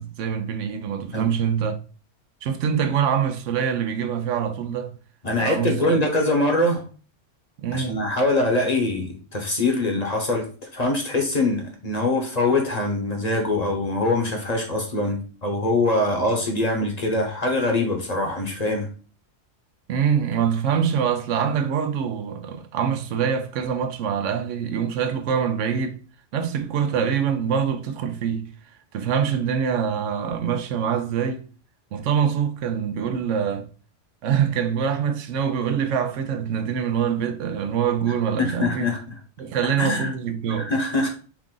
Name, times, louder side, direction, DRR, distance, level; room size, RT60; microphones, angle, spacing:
voice 1, 0.0-1.8 2.4-4.9 5.4-6.0 7.6-8.1 19.9-26.0 26.3-28.5 28.9-31.4 31.9-33.7 34.2-38.9 39.4-40.7, right 7 dB, 85° right, 1.0 m, -24 dB
voice 2, 5.2-6.8 7.7-18.9 38.4-39.0 39.8-40.1 40.6-41.1, left 2 dB, 35° left, 0.9 m, -23 dB
4.7 x 2.4 x 3.7 m
omnidirectional pair, 1.2 m